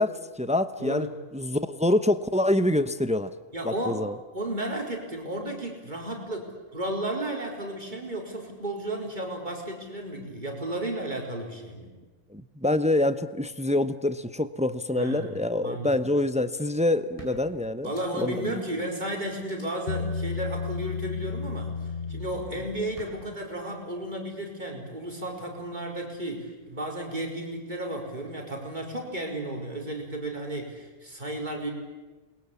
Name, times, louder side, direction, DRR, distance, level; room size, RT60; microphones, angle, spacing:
voice 1, 0.0-3.3 3.6-4.1 12.3-17.9 18.2-18.6, left 1 dB, 5° right, 11 dB, 0.7 m, -26 dB
voice 2, 0.8-1.1 3.5-4.0 4.3-11.9 14.9-15.4 15.6-16.0 17.8-21.7 22.1-31.7, right 1 dB, 35° right, 0 dB, 4.6 m, -33 dB
sound 1, 16.6-16.7 17.2-18.4 18.8-18.9 19.4-19.6 21.0-21.4 23.0-23.1, equal, 25° left, 6.5 m, -48 dB
Bass guitar, 19.9-23.3, left 4 dB, 45° left, 1.4 m, -33 dB
28.5 x 21.5 x 8.5 m, 1.2 s
omnidirectional pair, 1.3 m